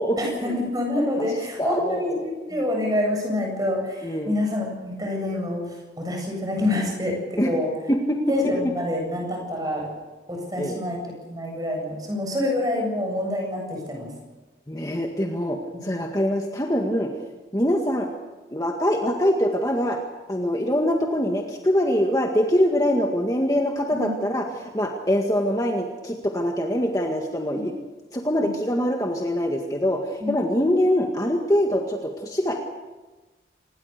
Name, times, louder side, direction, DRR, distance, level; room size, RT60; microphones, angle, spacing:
voice 1, 0.2-7.7 8.3-9.9 10.3-14.1 23.9-24.1 30.2-30.3, left 1 dB, 20° right, 1 dB, 7.7 m, -27 dB
voice 2, 1.6-2.2 4.0-4.3 7.4-7.5 7.9-8.5 10.6-10.8 14.7-17.1 17.5-18.1 18.5-20.0 20.3-27.7 28.1-32.6, equal, 20° left, 2 dB, 1.8 m, -24 dB
26.0 x 20.0 x 6.8 m, 1.2 s
head